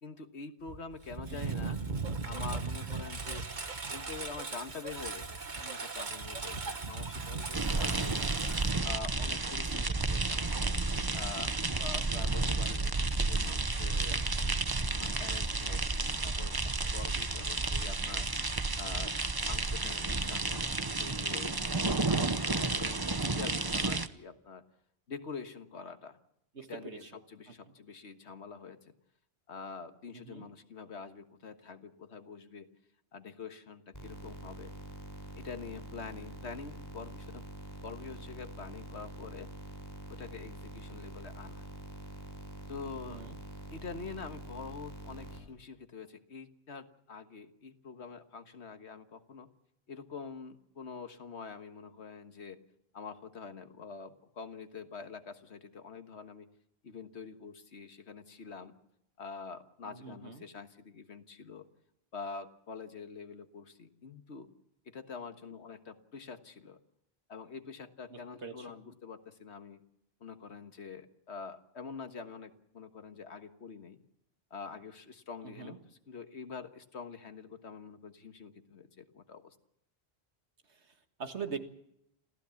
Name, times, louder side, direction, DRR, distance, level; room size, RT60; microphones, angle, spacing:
voice 1, 0.0-1.8 2.2-3.5 3.9-10.5 11.1-11.5 11.8-14.2 15.0-15.8 16.2-18.3 18.8-19.2 19.4-20.7 21.0-21.5 21.9-23.0 23.3-24.6 25.1-26.2 26.7-28.9 29.5-32.7 33.1-34.7 35.4-37.5 37.8-39.5 40.1-41.7 42.7-43.3 43.7-49.5 49.9-52.6 52.9-56.5 56.8-58.7 59.2-61.7 62.1-64.5 64.9-66.8 67.3-69.8 70.2-74.0 74.5-79.6, left 5 dB, 75° left, 8 dB, 1.7 m, -45 dB
Engine, 0.7-9.4, right 4 dB, 45° right, 1.5 m, -38 dB
voice 2, 1.3-1.6 12.3-12.4 26.5-27.1 27.7-27.8 30.1-30.5 43.1-43.4 59.9-60.4 68.1-68.7 75.4-75.8 80.7-81.6, right 6 dB, 80° right, 7 dB, 2.1 m, -43 dB
sound 1, 7.5-24.1, right 3 dB, 20° right, 0.9 m, -31 dB
sound 2, 33.9-45.4, right 1 dB, 15° left, 4.8 m, -46 dB
26.5 x 15.5 x 7.2 m, 0.77 s
omnidirectional pair, 1.1 m